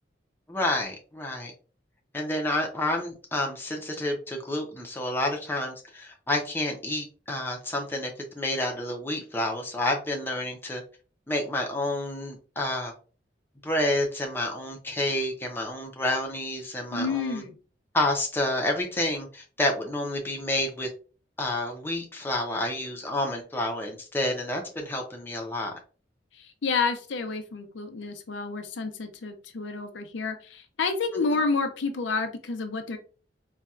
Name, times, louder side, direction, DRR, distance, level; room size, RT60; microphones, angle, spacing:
voice 1, 0.5-1.5 2.1-8.1 8.4-10.8 11.3-12.9 13.6-17.4 17.9-20.9 21.4-25.8 31.3-31.4, left 1 dB, 10° left, 1 dB, 0.5 m, -29 dB
voice 2, 16.9-17.5 26.3-33.0, left 4 dB, 90° left, 7 dB, 0.5 m, -29 dB
4.1 x 2.2 x 2.3 m, 0.37 s
head